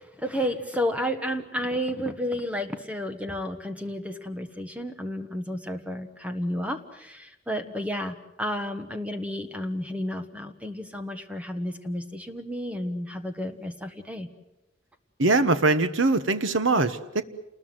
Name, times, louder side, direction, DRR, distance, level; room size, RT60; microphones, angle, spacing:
voice 1, 0.0-14.3, equal, 5° right, 7 dB, 1.3 m, -31 dB
voice 2, 15.2-17.2, right 3 dB, 85° right, 11 dB, 1.3 m, -22 dB
29.0 x 20.5 x 7.8 m, 0.95 s
head